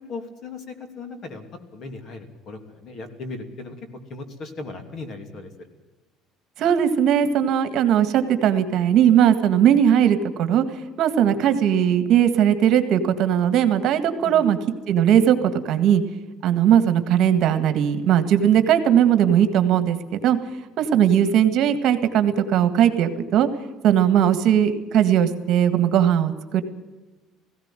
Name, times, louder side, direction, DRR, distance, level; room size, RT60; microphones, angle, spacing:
voice 1, 0.1-1.4 1.7-3.8 4.1-5.5 14.2-14.5, left 3 dB, 40° left, 7 dB, 2.9 m, -37 dB
voice 2, 6.6-10.6 11.0-14.6 14.9-16.0 16.4-20.4 20.8-23.5 23.8-26.6, right 9 dB, 55° right, 10 dB, 1.8 m, -19 dB
18.5 x 16.5 x 9.1 m, 1.2 s
cardioid pair, 150°, 0 cm